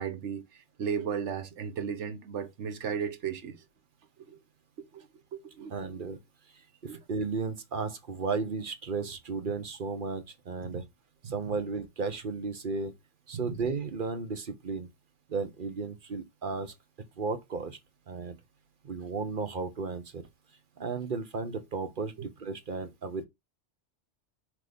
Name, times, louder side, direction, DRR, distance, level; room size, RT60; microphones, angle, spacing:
voice 1, 0.0-3.6 4.2-4.4 4.8-5.1 5.3-5.7 6.9-7.0 11.2-11.4 13.4-13.6, right 7 dB, 80° right, 1.2 m, -35 dB
voice 2, 5.7-6.2 6.8-10.8 11.2-12.9 13.3-14.9 15.3-16.7 17.2-17.8 18.1-18.4 18.8-20.2 20.8-23.2, right 4 dB, 50° right, 1.1 m, -34 dB
6.2 x 3.2 x 5.0 m
omnidirectional pair, 1.2 m